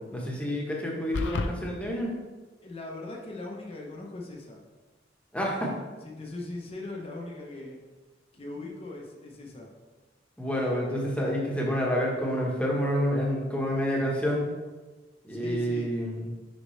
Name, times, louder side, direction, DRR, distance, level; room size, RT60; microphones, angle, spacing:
voice 1, 0.1-2.1 5.3-5.7 10.4-14.5 15.2-16.3, equal, 5° left, -3 dB, 1.2 m, -28 dB
sound 1, 1.1-1.5, left 2 dB, 70° left, 0.5 m, -28 dB
voice 2, 2.6-4.6 6.0-7.8 8.3-9.7 10.5-10.7 15.3-16.0, left 2 dB, 30° left, -1 dB, 0.8 m, -40 dB
6.4 x 5.2 x 3.2 m, 1.3 s
head